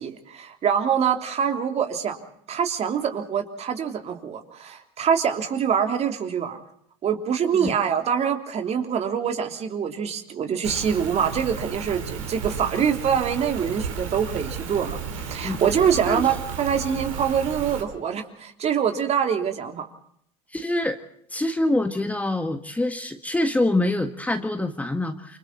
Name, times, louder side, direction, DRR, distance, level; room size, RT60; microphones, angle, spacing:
voice 1, 0.0-2.2 2.5-6.6 7.0-19.9, right 7 dB, 40° right, 5 dB, 3.3 m, -25 dB
Rain, 10.6-17.8, right 6 dB, 85° right, 4.1 m, -34 dB
voice 2, 20.5-21.0 21.3-25.4, left 1 dB, 10° left, 7 dB, 1.7 m, -25 dB
28.5 x 25.5 x 4.1 m, 0.67 s
hypercardioid pair, 80°, 17 cm